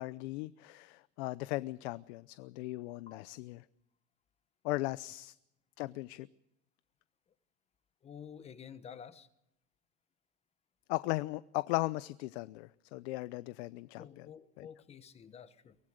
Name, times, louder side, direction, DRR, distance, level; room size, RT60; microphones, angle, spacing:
voice 1, 0.0-3.6 4.6-5.3 5.8-6.3 10.9-14.0, left 20 dB, 70° left, 0.7 m, -37 dB
voice 2, 8.0-9.3 14.0-15.8, left 8 dB, 20° left, 1.0 m, -50 dB
24.0 x 18.5 x 6.6 m
cardioid pair, 170°, 34 cm